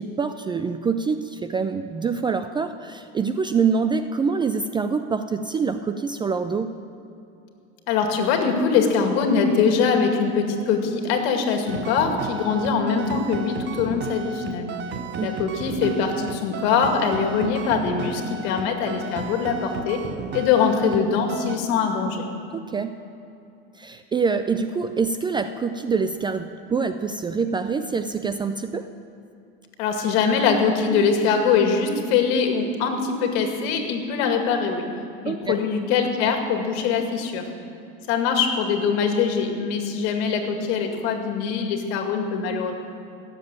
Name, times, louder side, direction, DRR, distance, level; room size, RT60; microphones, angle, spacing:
voice 1, 0.0-6.7 15.2-15.3 22.5-23.0 23.8-28.9 35.3-35.6, right 5 dB, 15° right, 9 dB, 0.4 m, -25 dB
voice 2, 7.9-14.8 15.2-20.0 20.3-22.2 29.8-34.9 35.2-37.5 38.1-42.8, left 6 dB, 65° left, 4 dB, 2.3 m, -22 dB
sound 1, 11.7-21.0 21.3-21.6, right 6 dB, 30° right, 0.9 m, -34 dB
16.5 x 7.6 x 9.2 m, 2.6 s
supercardioid pair, 120°, 33 cm